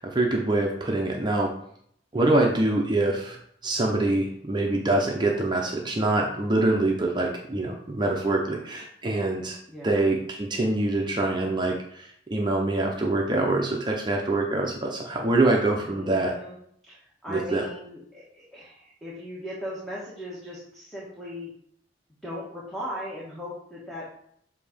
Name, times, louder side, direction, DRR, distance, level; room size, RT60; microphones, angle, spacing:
voice 1, 0.0-1.5 2.1-9.6 9.8-16.3 17.3-17.6, right 2 dB, 25° right, 0 dB, 0.7 m, -25 dB
voice 2, 15.8-16.6 16.8-21.5 22.2-24.0, left 1 dB, ahead, -7 dB, 1.3 m, -38 dB
7.6 x 2.8 x 5.0 m, 0.69 s
head